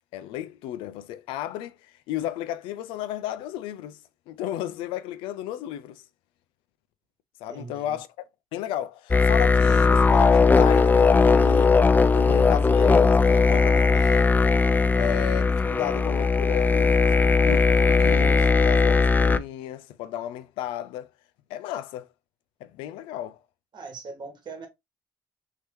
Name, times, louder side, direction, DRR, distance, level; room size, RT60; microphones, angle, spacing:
voice 1, 0.1-1.8 2.1-4.0 4.3-6.0 7.4-8.1 8.5-11.8 12.1-14.4 15.0-21.1 21.5-22.1 22.6-23.4, left 12 dB, 90° left, 0.3 m, -33 dB
voice 2, 7.5-8.0 23.7-24.7, right 4 dB, 60° right, 1.3 m, -41 dB
sound 1, 9.1-19.4, left 4 dB, 20° left, 0.4 m, -19 dB
3.0 x 2.8 x 3.3 m
supercardioid pair, 55°, 9 cm